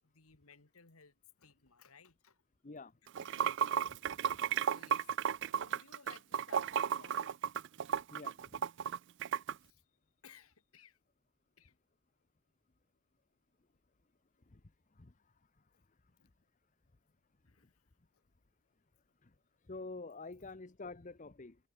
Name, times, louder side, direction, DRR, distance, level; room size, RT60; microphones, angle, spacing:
voice 1, 0.0-2.4 3.0-3.6 4.5-5.1 5.5-7.4 9.6-9.8 10.2-11.0 11.6-11.7 16.2-16.3 17.4-17.9, left 5 dB, 75° left, 2.3 m, -60 dB
Water / Sink (filling or washing), 3.1-9.5, right 8 dB, 55° right, 0.4 m, -34 dB
voice 2, 19.7-21.6, left 3 dB, 35° left, 0.8 m, -47 dB
head